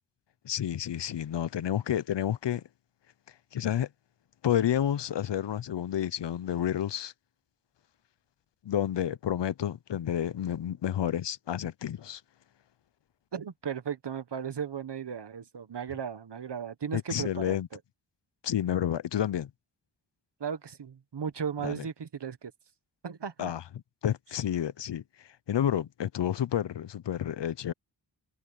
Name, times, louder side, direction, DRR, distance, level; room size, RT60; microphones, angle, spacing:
voice 1, 0.4-2.6 3.5-3.9 4.4-7.1 8.6-12.2 16.9-17.7 18.4-19.5 21.6-21.8 23.4-23.6 24.0-25.0 25.5-27.7, left 10 dB, 75° left, 0.6 m, -30 dB
voice 2, 13.3-17.8 20.4-22.5 23.0-23.5, right 7 dB, 70° right, 1.4 m, -36 dB
wide cardioid pair, 105°, 43 cm